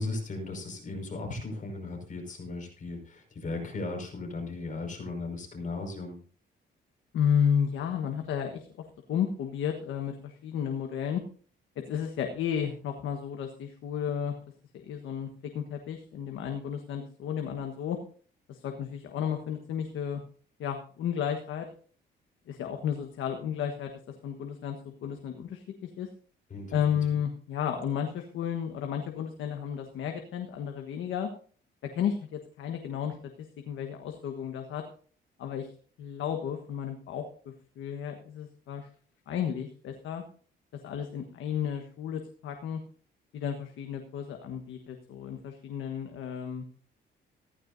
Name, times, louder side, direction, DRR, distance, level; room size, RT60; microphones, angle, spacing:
voice 1, 0.0-6.2 26.5-27.0, left 3 dB, 40° left, 2 dB, 5.4 m, -36 dB
voice 2, 7.1-8.7 9.1-11.2 11.8-14.3 14.7-18.0 18.5-20.2 20.6-21.7 22.5-23.9 24.2-26.1 26.7-31.3 31.9-33.2 33.7-34.9 35.4-35.7 36.0-38.9 39.3-40.2 40.8-42.8 43.3-46.6, left 8 dB, 80° left, 4 dB, 1.4 m, -32 dB
15.5 x 14.0 x 2.7 m, 0.43 s
cardioid pair, 90°, 20 cm